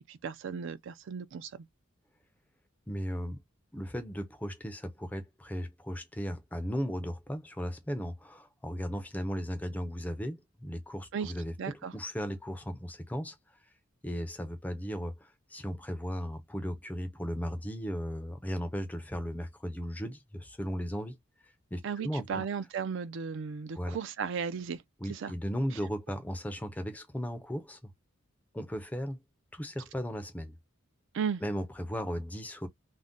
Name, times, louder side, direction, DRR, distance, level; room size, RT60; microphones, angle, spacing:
voice 1, 0.1-1.6 11.1-11.3 11.6-11.9 21.8-24.8 25.1-25.3 31.1-31.4, right 6 dB, 55° right, 0.4 m, -35 dB
voice 2, 2.9-3.4 3.7-13.4 14.0-21.2 21.4-22.5 23.7-24.0 25.0-27.8 28.5-29.2 29.5-30.6 31.4-32.7, equal, 5° left, 0.4 m, -36 dB
2.5 x 2.1 x 3.5 m
head